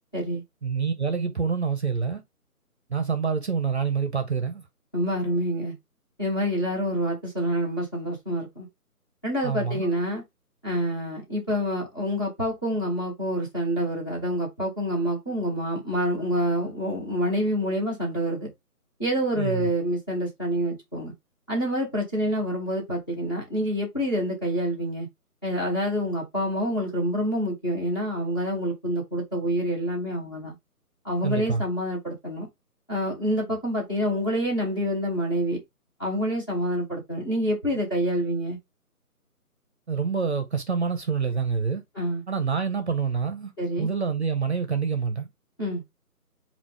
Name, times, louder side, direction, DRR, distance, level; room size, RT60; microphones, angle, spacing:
voice 1, 0.6-2.2 2.9-4.6 9.4-9.8 19.4-19.7 31.2-31.6 39.9-41.8 42.3-43.5 43.8-45.3, right 5 dB, 45° right, 0.6 m, -26 dB
voice 2, 4.9-5.7 6.2-8.7 9.2-10.2 10.6-18.5 19.0-21.1 21.5-25.1 25.4-30.5 31.0-32.5 32.9-35.6 36.0-38.6 41.9-42.2 43.6-43.9 45.6-45.8, equal, 15° left, 0.9 m, -27 dB
4.5 x 2.5 x 3.6 m
figure-of-eight pair, 160°, 45 cm